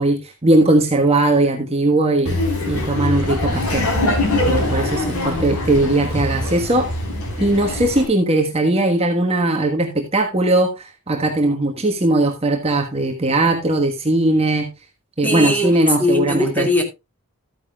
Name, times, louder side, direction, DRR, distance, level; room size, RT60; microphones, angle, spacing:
voice 1, 0.0-3.8 4.4-6.9 7.4-14.7 15.2-16.7, right 2 dB, 25° right, 1.4 m, -19 dB
Laughter, 2.3-8.0, left 1 dB, 90° left, 4.2 m, -22 dB
voice 2, 5.1-5.6 15.2-16.8, left 1 dB, 5° left, 2.2 m, -21 dB
13.5 x 9.6 x 2.3 m
head